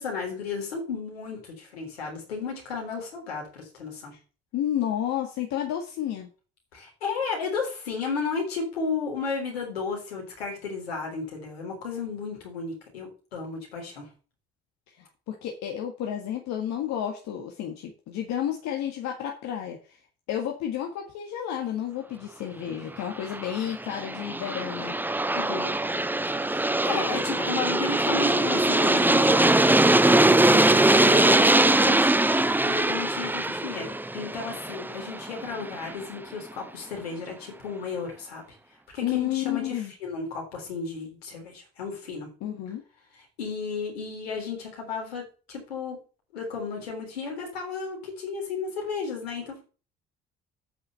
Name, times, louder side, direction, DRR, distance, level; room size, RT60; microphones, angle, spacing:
voice 1, 0.0-4.1 6.7-14.1 25.3-25.7 26.3-29.8 30.3-32.1 32.6-38.4 38.9-42.3 43.1-46.0 46.3-49.6, left 5 dB, 85° left, 0 dB, 3.8 m, -33 dB
voice 2, 4.5-6.3 14.9-20.0 20.3-25.0 39.0-39.9 42.4-42.8, left 10 dB, 65° left, 3 dB, 1.7 m, -31 dB
Aircraft, 23.1-35.9, right 2 dB, 5° right, 0.6 m, -22 dB
8.9 x 5.6 x 6.9 m, 0.36 s
hypercardioid pair, 50°, 30 cm